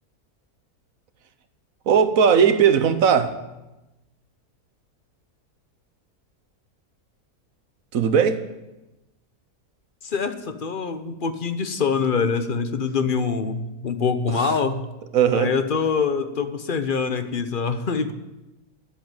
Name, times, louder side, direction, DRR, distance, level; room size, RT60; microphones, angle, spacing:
voice 1, 1.9-3.3 7.9-8.4 14.4-14.5 15.1-15.5, right 7 dB, 60° right, 10 dB, 1.3 m, -18 dB
voice 2, 10.0-14.9 15.3-18.1, left 5 dB, 40° left, 9 dB, 0.9 m, -24 dB
10.5 x 7.9 x 9.0 m, 1.0 s
omnidirectional pair, 1.7 m